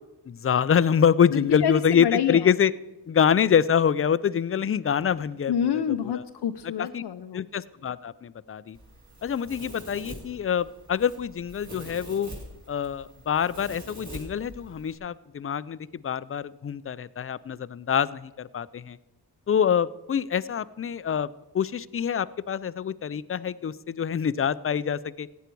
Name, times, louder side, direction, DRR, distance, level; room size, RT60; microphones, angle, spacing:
voice 1, 0.3-2.7 3.1-5.5 6.0-6.2 6.8-7.0 7.3-8.8 9.2-12.3 12.7-19.0 19.5-21.3 21.5-25.3, left 8 dB, 35° left, 18 dB, 0.4 m, -25 dB
voice 2, 1.3-2.5 5.5-7.4, left 9 dB, 75° left, 7 dB, 0.6 m, -27 dB
Domestic sounds home sounds, 8.7-15.0, equal, 40° right, 4.0 m, -44 dB
15.5 x 9.2 x 4.6 m, 1.0 s
cardioid pair, 60°, 41 cm